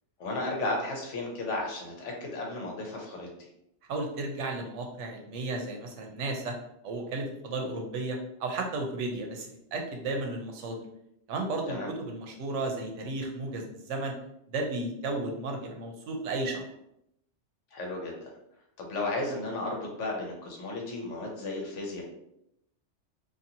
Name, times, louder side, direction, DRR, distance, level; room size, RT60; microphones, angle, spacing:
voice 1, 0.2-3.5 11.7-11.9 17.7-18.3 18.8-22.0, left 2 dB, 85° left, 0 dB, 1.1 m, -34 dB
voice 2, 3.9-6.5 6.8-10.8 11.3-14.2 14.5-16.6, right 2 dB, 85° right, 2 dB, 0.9 m, -34 dB
2.6 x 2.6 x 2.7 m, 0.79 s
omnidirectional pair, 1.2 m